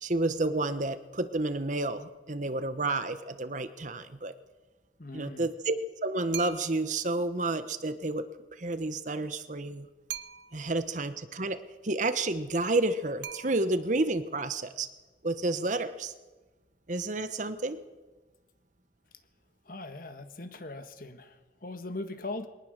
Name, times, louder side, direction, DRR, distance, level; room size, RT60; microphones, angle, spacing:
voice 1, 0.0-4.3 5.1-5.8 6.0-8.3 8.6-9.9 10.5-11.6 11.8-14.9 15.2-16.1 16.9-17.8, right 2 dB, 45° right, 11 dB, 1.2 m, -30 dB
voice 2, 5.0-5.5 19.6-22.5, left 2 dB, 55° left, 9 dB, 1.6 m, -40 dB
sound 1, 6.3-7.0 10.1-10.8 13.2-14.0, right 10 dB, 90° right, 0.8 m, -42 dB
23.0 x 19.0 x 6.6 m, 1.2 s
head